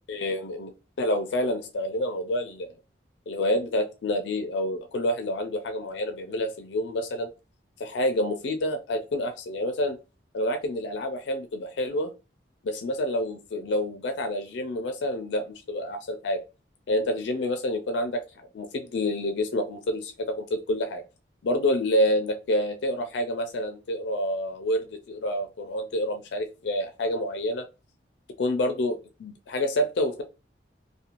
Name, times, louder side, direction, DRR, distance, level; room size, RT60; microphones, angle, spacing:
voice 1, 0.1-0.7 1.0-2.7 3.3-7.3 7.8-10.0 10.3-12.1 12.6-16.4 16.9-21.0 21.4-27.6 28.4-30.2, left 1 dB, 70° left, 7 dB, 0.4 m, -28 dB
2.5 x 2.2 x 2.8 m, 0.30 s
head